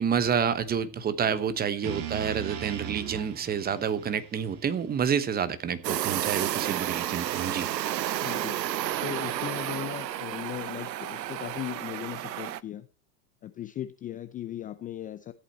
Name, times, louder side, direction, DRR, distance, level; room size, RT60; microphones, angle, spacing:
voice 1, 0.0-7.7, right 7 dB, 20° right, 1.0 m, -28 dB
voice 2, 1.3-1.9 8.2-8.6 9.0-12.9 13.4-15.3, left 12 dB, 15° left, 0.5 m, -38 dB
sound 1, 1.8-6.0, right 9 dB, 45° right, 2.8 m, -40 dB
sound 2, 5.8-12.6, right 13 dB, 85° right, 0.8 m, -31 dB
14.0 x 8.3 x 4.3 m
hypercardioid pair, 110°, 49 cm